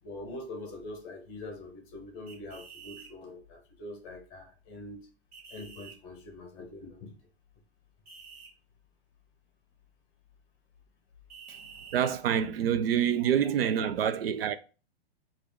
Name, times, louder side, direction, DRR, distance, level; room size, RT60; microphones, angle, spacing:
voice 1, 0.0-5.1 5.5-7.1 13.2-13.3 13.8-13.9, left 2 dB, 25° left, 0.9 m, -44 dB
sound 1, 2.3-3.1 5.3-6.0 8.1-8.5 11.3-12.1, right 5 dB, 35° right, 1.4 m, -49 dB
voice 2, 11.9-14.5, right 9 dB, 65° right, 0.5 m, -27 dB
4.9 x 2.6 x 3.5 m
hypercardioid pair, 170°, 32 cm